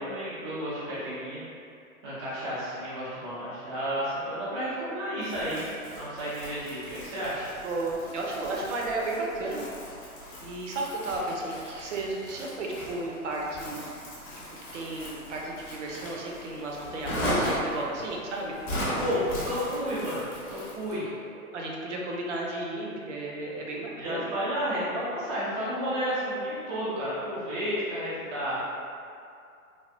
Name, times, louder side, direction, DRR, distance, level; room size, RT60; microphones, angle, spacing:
voice 1, 0.0-1.4 2.0-5.6 5.9-7.5 19.0-21.1 24.0-28.6, equal, 20° right, -10 dB, 0.3 m, -32 dB
Crumpling crinkling, 5.2-21.0, equal, 20° left, 0.7 m, -37 dB
voice 2, 7.6-9.7 10.4-13.8 14.7-18.5 21.3-24.3, right 2 dB, 55° right, -2 dB, 0.7 m, -33 dB
3.4 x 2.2 x 2.5 m, 2.4 s
hypercardioid pair, 120°, 43 cm